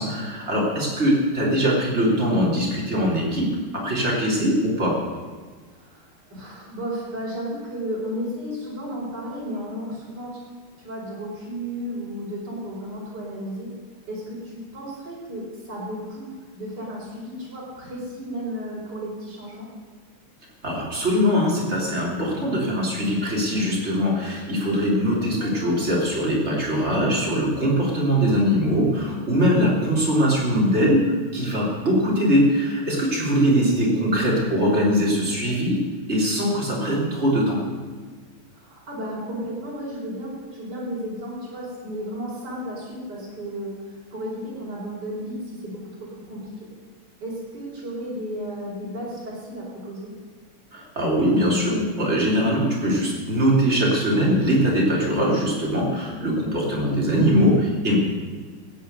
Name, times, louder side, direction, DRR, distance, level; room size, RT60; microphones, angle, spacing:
voice 1, 0.0-5.0 20.6-37.6 50.7-58.0, equal, 30° right, -4 dB, 3.7 m, -22 dB
voice 2, 5.7-10.4 10.8-13.7 14.1-16.3 16.5-19.7 25.4-25.7 34.0-34.8 38.5-43.7 44.1-46.7 47.2-50.1 56.2-56.5, equal, 50° right, -5 dB, 5.3 m, -33 dB
15.5 x 9.3 x 6.7 m, 1.5 s
omnidirectional pair, 2.4 m